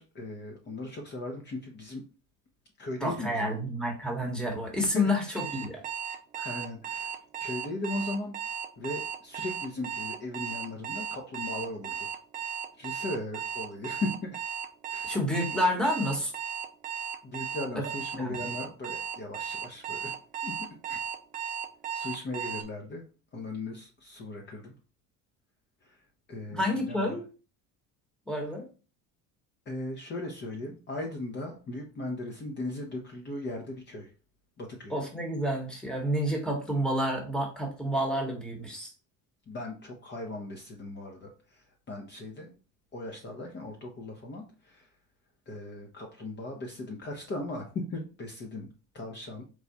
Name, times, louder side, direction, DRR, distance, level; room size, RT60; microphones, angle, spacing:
voice 1, 0.0-2.0 2.8-3.7 4.9-5.4 6.4-8.4 8.8-12.1 12.8-14.4 14.9-15.1 17.2-20.1 20.4-21.0 21.9-23.0 23.3-24.7 25.8-26.0 26.3-27.2 29.7-34.1 34.6-34.9 39.5-42.5 42.9-44.9 45.5-48.7 48.9-49.4, left 2 dB, 30° left, 1 dB, 0.8 m, -38 dB
voice 2, 3.0-5.8 6.4-6.6 15.0-16.3 17.8-17.9 18.2-18.5 26.5-27.2 28.3-28.7 34.9-38.9, equal, ahead, 1 dB, 1.1 m, -29 dB
Alarm, 5.4-22.6, right 7 dB, 25° right, 0.4 m, -36 dB
4.7 x 2.3 x 4.0 m, 0.34 s
cardioid pair, 140°, 35 cm